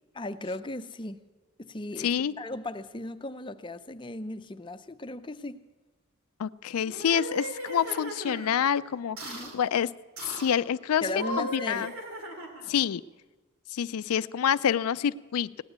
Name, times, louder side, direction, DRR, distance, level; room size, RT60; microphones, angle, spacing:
voice 1, 0.1-1.2 1.6-5.6 9.2-9.5 11.0-11.9, left 2 dB, 20° left, 0.5 m, -37 dB
voice 2, 2.0-2.3 6.4-9.9 10.2-11.0 11.4-11.9 12.7-13.0 13.7-15.6, left 8 dB, 90° left, 0.4 m, -27 dB
sound 1, 6.8-8.5 9.2-9.6 10.2-10.6 11.1-12.8, equal, 75° right, 2.4 m, -37 dB
17.5 x 9.6 x 8.1 m
head